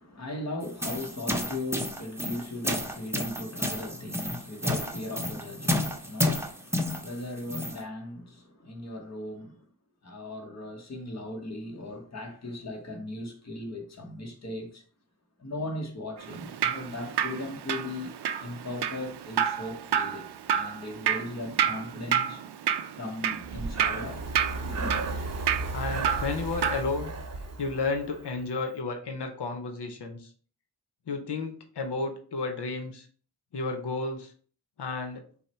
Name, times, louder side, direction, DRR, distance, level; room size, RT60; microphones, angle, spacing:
voice 1, 0.0-9.6 10.0-14.8 15.4-18.1 18.4-22.5 23.0-24.2 24.7-24.9, left 1 dB, 40° left, 1.0 m, -38 dB
sound 1, 0.6-7.8, left 1 dB, 5° right, 0.7 m, -31 dB
Drip, 16.2-26.8, right 8 dB, 80° right, 0.5 m, -30 dB
Breathing, 23.4-28.3, right 2 dB, 40° right, 0.7 m, -35 dB
voice 2, 25.7-27.1 27.6-30.3 31.1-33.1 33.5-34.3 34.8-35.2, left 3 dB, 90° left, 0.8 m, -32 dB
5.6 x 2.2 x 4.3 m
wide cardioid pair, 75°, 40 cm